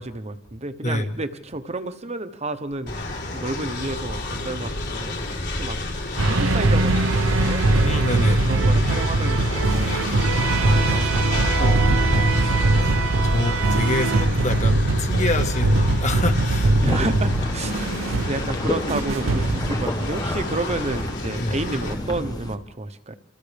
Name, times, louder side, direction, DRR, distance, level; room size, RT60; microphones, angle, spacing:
voice 1, 0.0-2.9 3.3-5.8 6.3-7.7 8.4-10.1 10.4-11.1 11.4-12.6 16.8-23.1, right 2 dB, 35° right, 1.1 m, -31 dB
voice 2, 0.8-1.2 7.8-8.4 11.6-12.4 12.7-17.3 21.3-21.6, left 1 dB, 35° left, 1.5 m, -27 dB
Train, 2.9-21.9, left 1 dB, 55° left, 4.1 m, -30 dB
sound 1, 6.2-20.2, right 2 dB, 75° right, 0.8 m, -21 dB
sound 2, 16.6-22.6, left 1 dB, 20° left, 1.3 m, -31 dB
29.5 x 27.0 x 3.5 m
head